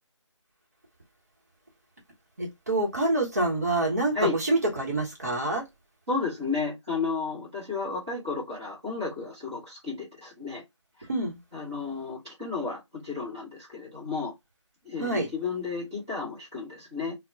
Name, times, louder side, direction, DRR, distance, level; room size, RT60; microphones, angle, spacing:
voice 1, 2.4-5.6 11.1-11.4 15.0-15.3, right 2 dB, 35° right, 0.9 m, -26 dB
voice 2, 6.1-10.6 11.5-14.3 14.8-17.2, left 4 dB, 10° right, 0.6 m, -32 dB
2.2 x 2.1 x 3.7 m
figure-of-eight pair, 165°, 16 cm